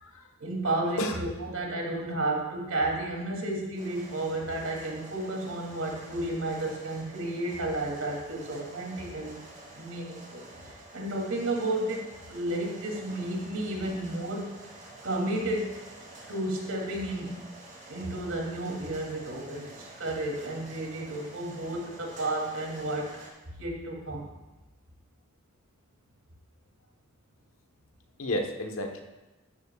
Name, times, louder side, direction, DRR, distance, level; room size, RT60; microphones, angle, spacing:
voice 1, 0.4-9.4 9.7-14.5 15.0-15.7 16.3-17.4 17.9-23.2 23.6-24.2, right 1 dB, 80° right, -1 dB, 2.9 m, -32 dB
voice 2, 1.0-1.3 28.2-29.0, left 1 dB, 75° left, 4 dB, 1.2 m, -32 dB
sound 1, 3.8-23.3, right 2 dB, 35° right, 2.9 m, -49 dB
14.0 x 11.5 x 2.4 m, 1.1 s
head